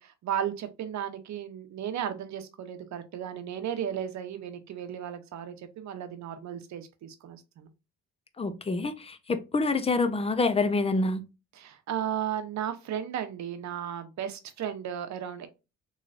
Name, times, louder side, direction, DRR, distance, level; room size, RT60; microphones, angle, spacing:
voice 1, 0.0-7.7 11.6-15.5, right 9 dB, 65° right, 0.8 m, -35 dB
voice 2, 8.4-11.3, left 3 dB, 20° left, 0.6 m, -27 dB
3.2 x 3.0 x 2.4 m
cardioid pair, 90°, 30 cm